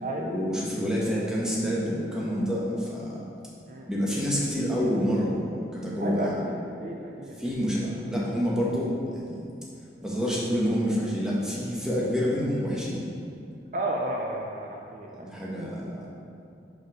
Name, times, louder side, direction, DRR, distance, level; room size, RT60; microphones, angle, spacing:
voice 1, 0.2-3.2 3.9-6.4 7.4-9.4 10.0-13.0 15.2-16.1, equal, 5° right, -6 dB, 1.1 m, -28 dB
voice 2, 6.0-6.5 6.8-7.9 13.7-15.3, right 1 dB, 45° right, -1 dB, 0.5 m, -33 dB
5.9 x 5.2 x 4.9 m, 2.6 s
head